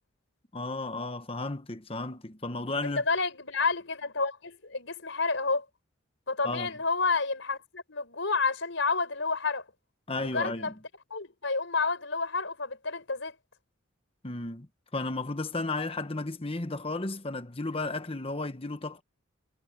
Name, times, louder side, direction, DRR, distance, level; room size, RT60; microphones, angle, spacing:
voice 1, 0.5-3.0 6.4-6.7 10.1-10.7 14.2-14.7 14.9-19.0, left 2 dB, 30° left, 1.1 m, -33 dB
voice 2, 2.8-5.6 6.3-9.6 10.2-10.7 11.1-13.3, left 4 dB, 70° left, 4.6 m, -30 dB
head